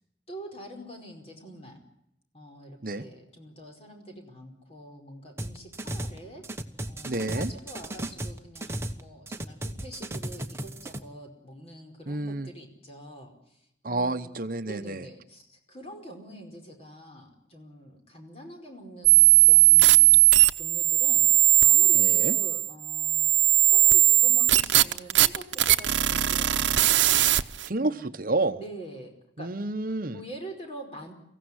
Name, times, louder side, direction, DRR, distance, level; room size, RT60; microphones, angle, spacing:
voice 1, 0.3-1.8 2.3-6.5 6.9-14.3 14.6-20.2 20.6-27.2 27.8-28.1 28.5-29.5 30.1-31.1, right 1 dB, 35° left, 3 dB, 5.0 m, -45 dB
sound 1, 5.4-6.2 6.4-9.0 9.3-11.0, right 1 dB, 15° right, 1.2 m, -35 dB
voice 2, 7.1-7.5 12.1-12.5 13.8-15.0 21.9-22.4 27.7-28.6 29.4-30.2, right 2 dB, 50° right, 9 dB, 0.9 m, -29 dB
sound 2, 19.0-27.7, right 15 dB, 90° right, 0.8 m, -19 dB
24.0 x 16.0 x 9.7 m, 0.78 s
head